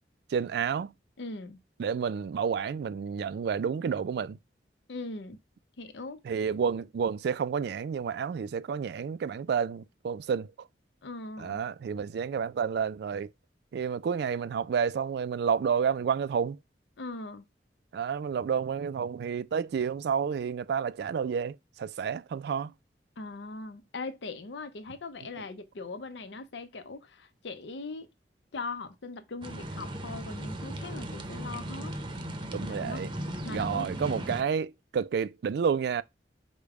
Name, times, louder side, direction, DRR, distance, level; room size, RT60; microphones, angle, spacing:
voice 1, 0.3-0.9 1.8-4.4 6.2-10.5 11.4-13.3 13.7-16.6 17.9-22.7 32.5-33.1 33.5-36.0, right 6 dB, 65° right, 0.3 m, -30 dB
voice 2, 1.2-1.6 4.9-5.4 5.8-6.2 11.0-11.6 17.0-17.5 23.2-28.1 28.5-31.9 32.6-33.0 33.4-34.3, left 3 dB, 85° left, 0.6 m, -40 dB
sound 1, 29.4-34.4, right 1 dB, 30° right, 0.7 m, -37 dB
5.1 x 2.2 x 4.7 m
head